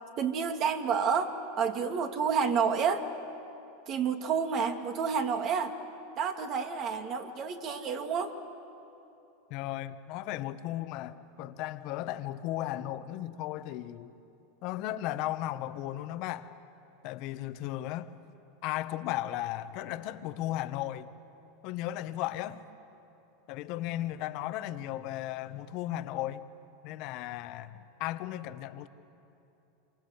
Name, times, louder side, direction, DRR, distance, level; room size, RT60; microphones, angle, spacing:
voice 1, 0.2-3.1 3.9-5.7 6.2-8.3, right 6 dB, 45° right, 2.4 m, -29 dB
voice 2, 9.5-14.1 14.6-16.5 17.0-18.1 18.6-21.1 21.6-22.6 23.5-26.4 26.8-28.9, left 14 dB, 55° left, 1.2 m, -35 dB
27.5 x 24.0 x 8.1 m
hypercardioid pair, 105°, 0 cm